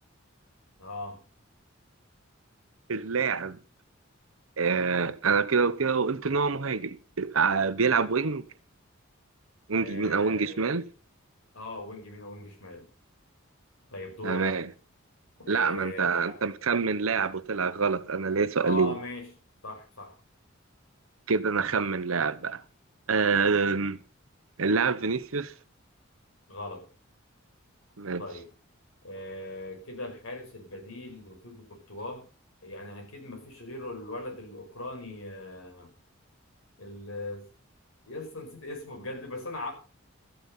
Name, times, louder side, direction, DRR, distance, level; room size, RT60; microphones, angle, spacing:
voice 1, 0.8-1.2 9.7-10.6 11.5-12.9 13.9-14.6 15.4-16.4 18.6-19.3 19.6-20.2 26.5-26.9 28.2-28.5 29.0-32.2 32.6-35.9 36.8-37.5 38.1-39.7, left 2 dB, 85° left, 5.3 m, -39 dB
voice 2, 2.9-3.6 4.6-8.5 9.7-10.8 14.2-14.7 15.5-18.9 21.3-22.6 23.1-24.0 24.6-25.5 28.0-28.2, right 5 dB, 80° right, 0.9 m, -26 dB
13.5 x 9.6 x 5.5 m
head